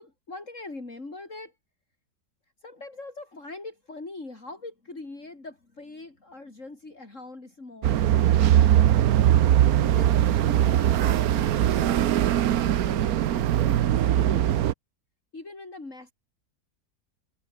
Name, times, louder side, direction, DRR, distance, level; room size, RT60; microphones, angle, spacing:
voice 1, 0.0-1.5 2.6-8.6 9.7-12.1 12.5-14.5 15.3-16.1, left 2 dB, 50° left, 4.5 m, -42 dB
sound 1, 7.8-14.7, right 11 dB, 65° right, 1.2 m, -21 dB
omnidirectional pair, 1.7 m